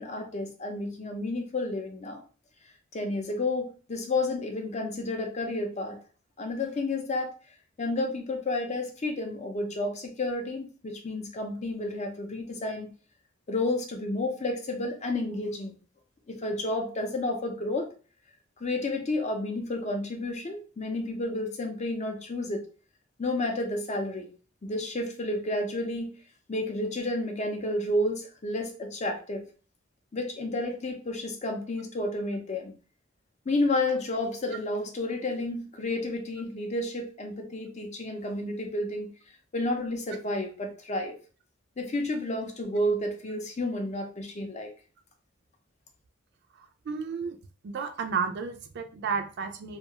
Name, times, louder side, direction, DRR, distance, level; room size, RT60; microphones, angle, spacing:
voice 1, 0.0-2.2 2.9-6.0 6.4-7.3 7.8-12.9 13.5-15.8 16.3-17.9 18.6-22.6 23.2-24.3 24.6-26.1 26.5-29.4 30.1-32.7 33.5-39.1 39.5-41.1 41.8-44.7, left 2 dB, 35° left, 4 dB, 0.5 m, -31 dB
voice 2, 46.9-47.4 47.6-49.8, right 5 dB, 55° right, 7 dB, 0.4 m, -32 dB
2.3 x 2.3 x 2.8 m, 0.38 s
head